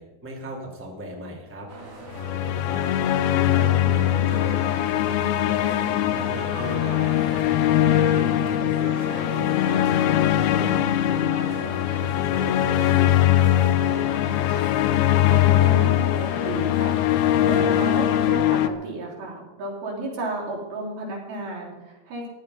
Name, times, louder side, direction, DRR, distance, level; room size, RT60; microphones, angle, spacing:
voice 1, 0.0-1.7 2.3-4.6 5.0-7.1 7.8-10.0 10.4-11.6 12.0-13.9, equal, 5° right, -1 dB, 1.9 m, -37 dB
sound 1, 1.7-18.3, right 2 dB, 55° right, 4.1 m, -39 dB
sound 2, 2.2-18.7, left 12 dB, 85° left, 2.6 m, -21 dB
voice 2, 15.3-17.0 17.5-22.3, right 2 dB, 80° right, -2 dB, 5.2 m, -32 dB
15.5 x 11.0 x 5.5 m, 1.1 s
omnidirectional pair, 4.3 m